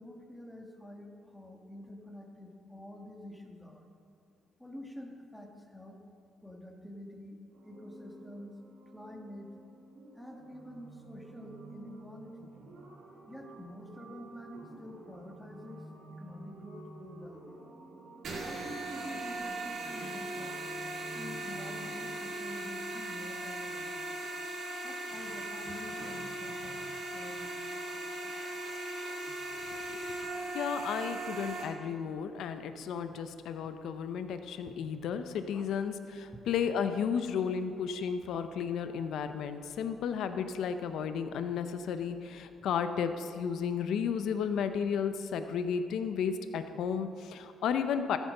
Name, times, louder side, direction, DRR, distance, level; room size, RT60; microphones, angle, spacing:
voice 1, 0.0-3.9 4.6-6.0 6.4-8.5 8.9-9.5 10.2-12.5 13.3-17.6 18.4-20.8 21.1-24.2 24.8-26.9 27.1-28.3 32.3-32.4 34.3-34.7 35.5-35.7 36.3-36.4, left 1 dB, 5° left, 1 dB, 1.6 m, -48 dB
sound 1, 7.5-22.1, right 2 dB, 85° right, 3.1 m, -51 dB
sound 2, 18.2-31.6, right 2 dB, 65° right, 2.1 m, -39 dB
voice 2, 29.7-30.3 30.5-48.2, left 7 dB, 75° left, 9 dB, 0.6 m, -33 dB
14.0 x 8.2 x 5.3 m, 2.4 s
cardioid pair, 90°, 0 cm